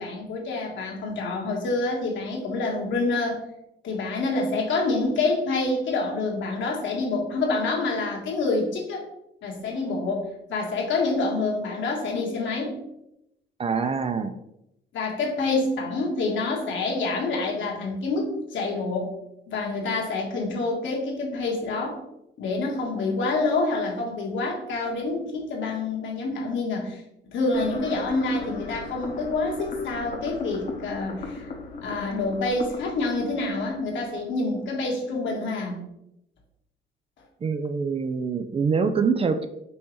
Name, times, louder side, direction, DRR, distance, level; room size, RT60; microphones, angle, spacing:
voice 1, 0.0-3.4 3.8-9.0 9.4-12.8 14.9-19.1 19.5-22.0 22.4-27.0 27.3-31.5 31.8-35.8, left 3 dB, 70° left, -1 dB, 1.4 m, -27 dB
voice 2, 13.6-14.3 37.4-39.5, right 5 dB, 30° right, 9 dB, 0.4 m, -25 dB
sound 1, 27.5-34.6, left 4 dB, 45° left, 0.9 m, -37 dB
5.4 x 2.9 x 3.1 m, 0.83 s
cardioid pair, 90°, 20 cm